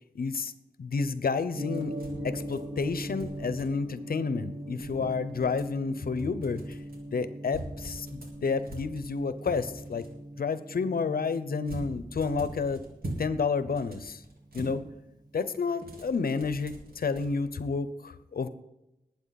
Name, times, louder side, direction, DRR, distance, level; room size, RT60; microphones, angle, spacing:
voice 1, 0.1-0.5 0.8-1.9 2.2-6.8 7.1-10.0 10.4-12.8 13.2-14.2 14.5-14.8 15.3-18.5, left 4 dB, 90° left, 13 dB, 0.9 m, -30 dB
Gong, 1.5-15.7, equal, 25° right, 1.8 m, -41 dB
sound 1, 1.7-4.0 4.7-5.8 6.2-7.0 7.5-10.1 11.6-13.3 13.6-14.8 15.8-17.3, right 1 dB, 85° right, 3.6 m, -43 dB
20.5 x 8.8 x 4.2 m, 0.90 s
wide cardioid pair, 105°, 15 cm